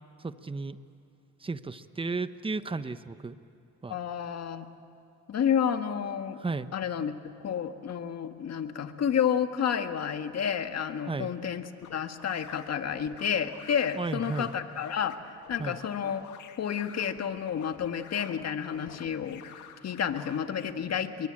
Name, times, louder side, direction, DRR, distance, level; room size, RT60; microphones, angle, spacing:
voice 1, 0.2-0.8 1.4-3.4 3.8-4.0 6.4-6.7 11.1-11.3 14.0-14.5 15.6-15.8, right 3 dB, 20° right, 12 dB, 1.0 m, -34 dB
voice 2, 3.9-4.7 5.3-6.4 6.7-7.1 7.4-16.2 16.6-19.4 19.8-21.3, left 8 dB, 55° left, 7 dB, 1.8 m, -30 dB
sound 1, 11.8-20.7, left 9 dB, 80° left, 2.0 m, -50 dB
28.5 x 23.0 x 8.9 m, 2.7 s
cardioid pair, 90°, 30 cm